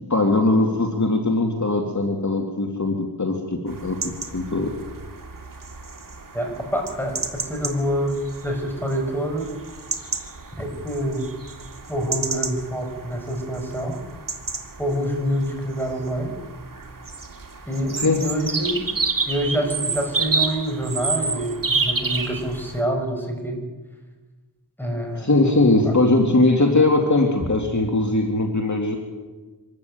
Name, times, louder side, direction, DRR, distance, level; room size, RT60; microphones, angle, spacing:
voice 1, 0.0-4.7 18.0-18.3 25.2-29.0, left 2 dB, 45° left, 2 dB, 2.5 m, -20 dB
sound 1, 3.7-22.8, right 4 dB, 50° right, 2.2 m, -30 dB
voice 2, 6.3-9.5 10.6-11.3 11.9-14.0 14.8-16.3 17.7-18.9 19.2-23.6 24.8-25.3 25.8-25.9, equal, 5° left, 2 dB, 6.6 m, -26 dB
25.0 x 13.5 x 9.2 m, 1.3 s
wide cardioid pair, 60°, 41 cm